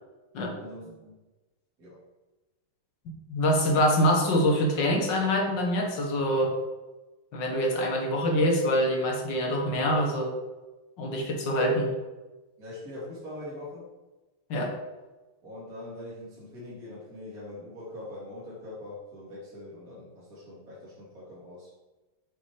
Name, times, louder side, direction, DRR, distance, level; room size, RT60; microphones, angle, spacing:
voice 1, 0.6-1.1 1.8-2.0 12.6-13.9 15.4-21.7, left 1 dB, 40° right, -9 dB, 3.0 m, -42 dB
voice 2, 3.3-6.5 7.3-10.3 11.0-11.9 14.5-14.7, equal, 60° left, 1 dB, 2.0 m, -25 dB
7.9 x 6.0 x 5.0 m, 1.2 s
omnidirectional pair, 2.4 m